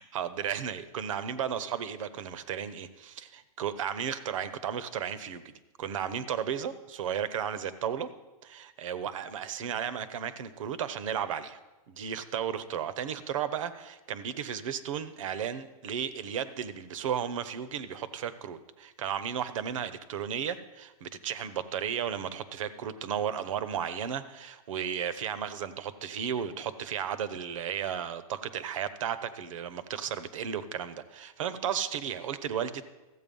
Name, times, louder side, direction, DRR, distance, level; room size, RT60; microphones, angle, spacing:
voice 1, 0.0-8.1 8.4-11.6 11.9-32.8, right 8 dB, 65° right, 13 dB, 0.9 m, -34 dB
14.5 x 8.1 x 5.4 m, 1.1 s
hypercardioid pair, 160°, 18 cm